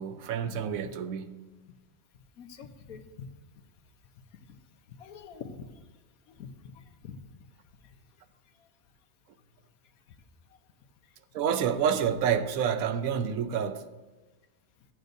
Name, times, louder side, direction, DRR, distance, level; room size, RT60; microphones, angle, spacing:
voice 1, 0.0-1.5 11.3-13.9, right 8 dB, 75° right, 1.0 m, -28 dB
voice 2, 2.4-3.3 4.9-5.7 6.3-7.2, left 6 dB, 90° left, 1.3 m, -45 dB
14.5 x 9.0 x 2.6 m
omnidirectional pair, 1.5 m